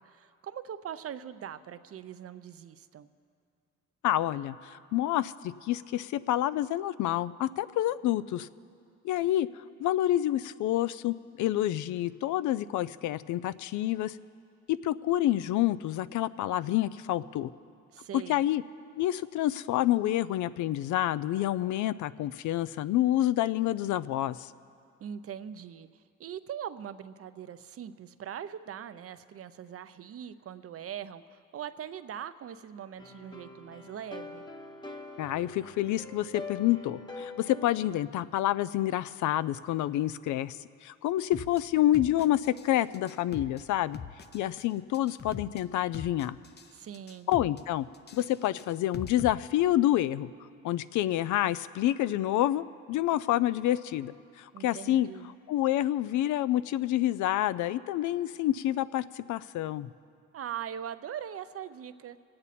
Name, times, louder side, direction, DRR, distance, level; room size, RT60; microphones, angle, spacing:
voice 1, 0.0-3.1 17.9-18.4 25.0-34.4 46.7-47.3 54.5-55.3 60.3-62.2, right 9 dB, 50° right, 13 dB, 0.6 m, -41 dB
voice 2, 4.0-8.5 9.0-9.5 9.8-14.2 14.7-17.5 18.1-18.6 19.0-24.5 35.2-44.0 44.3-46.4 47.3-47.9 48.1-50.3 50.6-55.1 55.5-59.9, left 13 dB, 75° left, 16 dB, 0.4 m, -28 dB
sound 1, 33.0-38.0, left 3 dB, 15° left, 1.0 m, -44 dB
sound 2, 41.3-41.6 41.9-42.7 42.9-43.6 43.9-44.6 44.9-45.6 45.9-46.7 46.9-47.6 47.9-49.3, left 6 dB, 35° left, 0.7 m, -42 dB
26.0 x 8.7 x 4.2 m, 2.4 s
cardioid pair, 90°, 30 cm